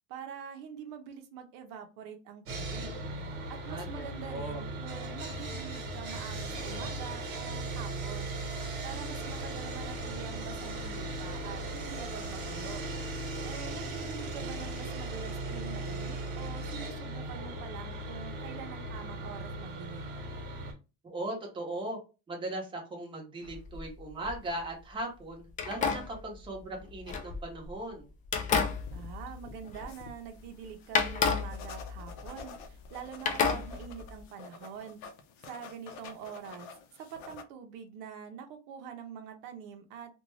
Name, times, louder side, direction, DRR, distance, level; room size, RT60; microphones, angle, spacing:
voice 1, 0.1-3.0 3.3-12.8 13.4-20.1 28.9-35.0 35.4-36.7 36.9-40.1, right 7 dB, 80° right, 6 dB, 0.6 m, -45 dB
Sawing, 2.5-20.7, right 2 dB, 50° right, 1.0 m, -38 dB
voice 2, 3.7-4.0 4.3-4.6 21.0-22.0 22.3-28.1, right 1 dB, 15° right, 0 dB, 0.8 m, -38 dB
sound 1, 23.4-24.6 25.5-27.8 28.2-30.2 30.4-30.5 30.9-32.9 33.3-34.2, left 5 dB, 25° left, 0.4 m, -32 dB
sound 2, 28.6-37.4, left 5 dB, 65° left, 0.6 m, -50 dB
2.5 x 2.2 x 3.1 m, 0.30 s
cardioid pair, 145°, 31 cm